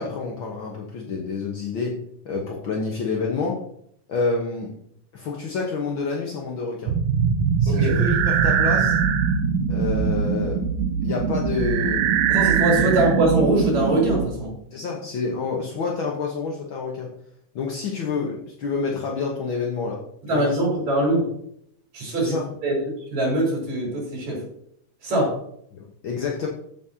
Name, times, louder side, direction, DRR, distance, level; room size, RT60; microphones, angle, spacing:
voice 1, 0.0-2.0 2.2-3.6 4.1-4.7 5.1-6.9 7.6-9.0 9.7-10.6 11.0-12.3 12.8-12.9 14.7-17.1 17.5-20.0 20.3-20.6 22.1-22.5 25.7-26.5, left 4 dB, 55° left, -1 dB, 1.5 m, -28 dB
sound 1, 6.9-14.3, right 6 dB, 75° right, 1.8 m, -21 dB
voice 2, 7.7-8.0 12.3-14.5 20.3-21.2 21.9-22.4 22.6-22.8 23.1-24.4 25.0-25.3, right 1 dB, 60° right, -2 dB, 5.6 m, -22 dB
14.5 x 7.5 x 2.9 m, 0.69 s
omnidirectional pair, 3.7 m